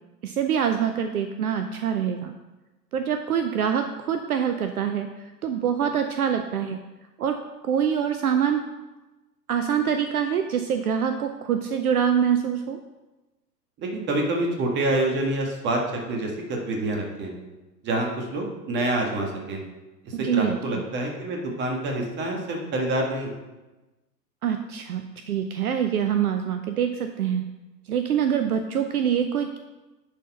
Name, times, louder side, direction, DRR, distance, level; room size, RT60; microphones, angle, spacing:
voice 1, 0.2-2.3 2.9-6.8 7.2-7.4 7.6-8.6 9.5-12.8 20.1-20.6 24.4-27.4 27.9-29.6, right 8 dB, 60° right, 7 dB, 0.7 m, -25 dB
voice 2, 13.8-17.3 17.8-19.6 20.2-23.3, right 2 dB, 20° right, 1 dB, 1.7 m, -27 dB
10.5 x 4.3 x 5.7 m, 1.1 s
figure-of-eight pair, 110°, 50 cm